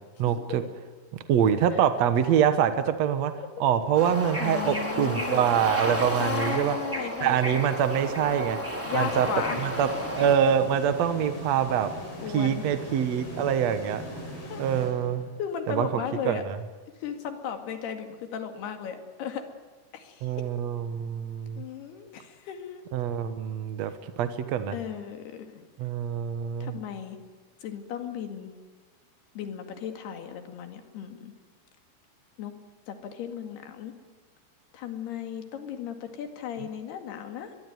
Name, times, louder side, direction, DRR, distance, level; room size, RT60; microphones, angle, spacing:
voice 1, 0.2-0.6 1.3-3.3 3.6-6.8 7.2-8.6 8.9-9.3 9.6-9.9 10.1-11.9 12.3-14.0 14.6-15.3 15.7-16.6 20.2-21.6 22.9-23.9 24.2-24.8 25.8-26.8, right 9 dB, 60° right, 9 dB, 1.9 m, -25 dB
Bird / Ocean, 3.9-10.4, equal, 5° right, 3.8 m, -32 dB
voice 2, 4.4-5.4 6.2-7.6 8.8-9.6 12.2-12.6 14.5-14.6 15.4-16.4 17.0-19.4 19.9-20.3 21.6-22.9 24.7-25.7 26.6-27.2 27.6-28.5 29.4-31.3 32.4-32.5 32.9-33.9 34.7-37.6, left 8 dB, 85° left, 6 dB, 4.2 m, -35 dB
sound 1, 8.8-15.6, equal, 60° left, 7.5 m, -40 dB
23.0 x 22.0 x 9.4 m, 1.4 s
omnidirectional pair, 4.5 m